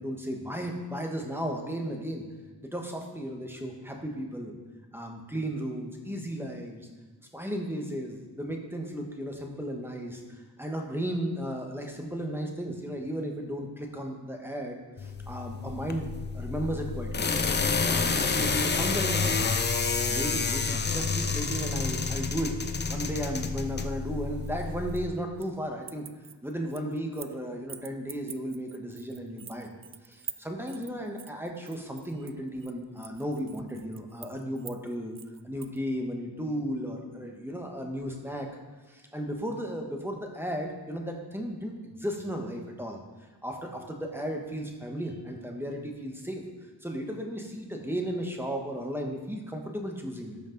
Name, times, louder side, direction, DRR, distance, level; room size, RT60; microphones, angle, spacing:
voice 1, 0.0-2.2 2.6-4.6 4.9-6.9 7.3-16.1 16.3-17.3 17.9-19.6 20.1-22.6 22.9-26.0 26.4-29.7 30.0-35.2 35.4-38.5 38.9-43.0 43.4-46.4 46.8-50.4, equal, 5° right, 1 dB, 1.2 m, -35 dB
sound 1, 15.0-25.1, left 4 dB, 25° left, 0.6 m, -29 dB
sound 2, 24.4-25.6 25.8-27.4 27.7-35.8, right 8 dB, 35° right, 0.4 m, -46 dB
13.0 x 5.2 x 3.9 m, 1.3 s
wide cardioid pair, 100°, 40 cm